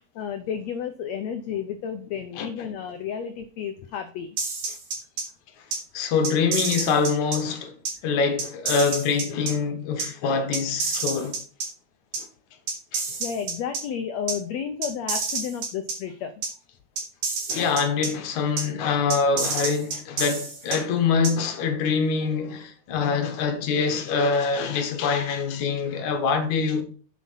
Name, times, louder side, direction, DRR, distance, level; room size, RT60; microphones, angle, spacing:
voice 1, 0.1-4.4 13.2-16.4, left 8 dB, 85° left, 1.5 m, -32 dB
sound 1, 4.4-5.2 5.7-5.8 6.2-7.4 7.8-7.9 8.4-9.5 10.0-10.1 10.5-11.7 12.1-12.2 12.7-13.8 14.3-14.4 14.8-15.9 16.4-16.5 17.0-18.1 18.6-18.7 19.1-20.8 21.2-21.3, right 4 dB, 65° right, 3.9 m, -28 dB
voice 2, 5.9-7.8 8.0-11.4 12.9-13.0 17.5-26.8, left 5 dB, 65° left, 2.4 m, -24 dB
7.4 x 7.1 x 5.7 m
omnidirectional pair, 4.1 m